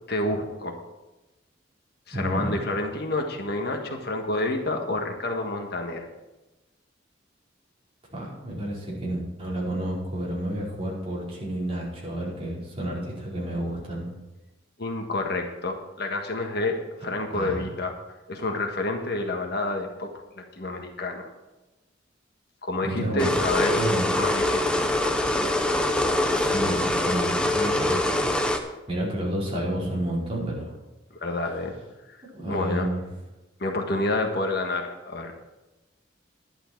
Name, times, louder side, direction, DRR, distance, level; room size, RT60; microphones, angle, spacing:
voice 1, 0.1-0.8 2.1-6.0 14.8-17.9 18.3-21.3 22.6-23.9 24.2-24.9 31.1-31.7 32.1-32.9 33.6-35.3, left 2 dB, 60° left, 3 dB, 1.5 m, -29 dB
voice 2, 2.1-2.6 8.1-14.1 17.3-17.7 22.8-23.4 23.7-24.0 26.3-30.7 32.3-33.0, right 1 dB, 30° right, -6 dB, 4.8 m, -30 dB
sound 1, 23.2-28.6, left 1 dB, 5° left, 0.9 m, -24 dB
11.5 x 11.0 x 4.6 m, 1.1 s
head